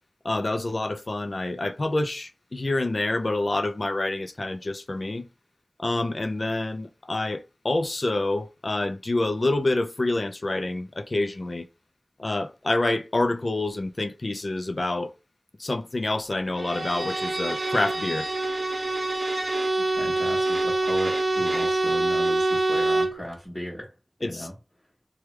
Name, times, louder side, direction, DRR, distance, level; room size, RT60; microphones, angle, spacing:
voice 1, 0.2-5.3 5.8-11.7 12.2-15.1 15.6-18.3 24.2-24.5, left 2 dB, 70° left, 0.4 m, -27 dB
Bowed string instrument, 16.6-23.2, right 2 dB, 60° right, 0.6 m, -25 dB
voice 2, 19.8-23.9 24.2-24.5, equal, 15° left, 1.2 m, -36 dB
3.3 x 2.3 x 3.0 m
wide cardioid pair, 45°, 0 cm